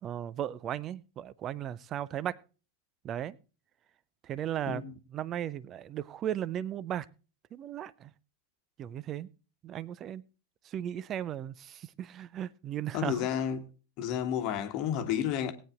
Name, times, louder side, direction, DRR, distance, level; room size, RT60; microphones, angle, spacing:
voice 1, 0.0-2.4 3.0-3.4 4.2-4.8 5.1-7.1 7.5-8.1 8.8-9.3 9.6-10.2 10.6-13.3, right 10 dB, 30° right, 0.5 m, -36 dB
voice 2, 12.9-13.7 14.0-15.5, left 9 dB, 40° left, 1.3 m, -31 dB
19.5 x 9.1 x 2.4 m
figure-of-eight pair, 90°, 0 cm